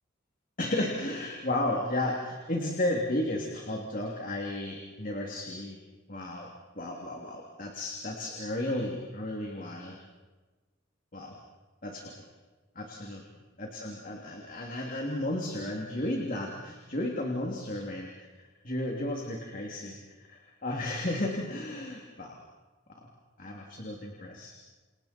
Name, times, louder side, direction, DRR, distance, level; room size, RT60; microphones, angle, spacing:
voice 1, 0.6-5.8 6.1-6.5 6.7-10.0 11.1-11.4 11.8-12.1 12.7-13.2 13.6-18.3 18.6-22.4 22.9-23.1 23.4-24.5, left 1 dB, 45° left, 0 dB, 3.1 m, -33 dB
29.5 x 29.0 x 4.5 m, 1.3 s
head